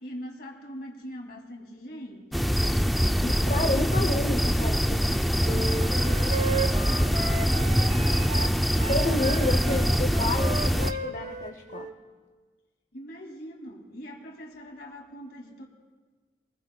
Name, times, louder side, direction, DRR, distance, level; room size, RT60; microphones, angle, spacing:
voice 1, 0.0-2.8 5.5-8.8 12.9-15.7, equal, 60° left, 2.4 m, -43 dB
sound 1, 2.3-10.9, equal, ahead, 0.4 m, -24 dB
voice 2, 3.2-5.3 8.9-11.9, left 2 dB, 45° left, 0.7 m, -30 dB
sound 2, 5.4-11.9, right 3 dB, 40° right, 1.0 m, -34 dB
23.5 x 20.0 x 2.2 m
head